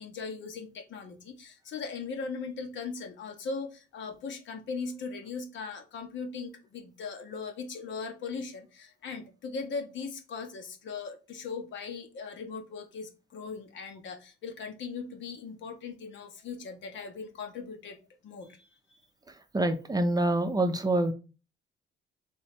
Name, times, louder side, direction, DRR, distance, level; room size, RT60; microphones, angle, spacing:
voice 1, 0.0-18.0 18.2-18.7, left 5 dB, 70° left, 5 dB, 1.0 m, -39 dB
voice 2, 19.5-21.1, right 1 dB, 20° right, 7 dB, 0.6 m, -26 dB
3.6 x 3.1 x 4.3 m, 0.32 s
cardioid pair, 90°, 20 cm